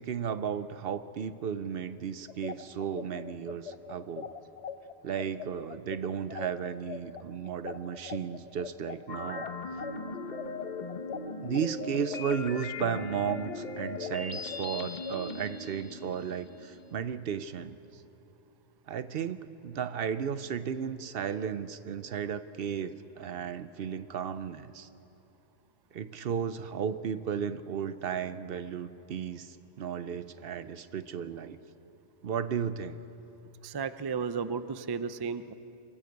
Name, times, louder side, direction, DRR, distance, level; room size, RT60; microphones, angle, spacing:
voice 1, 0.0-4.3 5.0-9.5 11.4-17.8 18.9-24.9 25.9-31.6 32.2-33.0, right 7 dB, 65° right, 13 dB, 0.8 m, -34 dB
sound 1, 2.3-11.7 12.1-15.2, left 8 dB, 90° left, 1.0 m, -42 dB
sound 2, 9.1-17.0, left 3 dB, 45° left, 1.1 m, -39 dB
voice 2, 33.6-35.5, right 5 dB, 35° right, 13 dB, 0.4 m, -33 dB
24.0 x 13.5 x 8.0 m, 2.9 s
omnidirectional pair, 1.1 m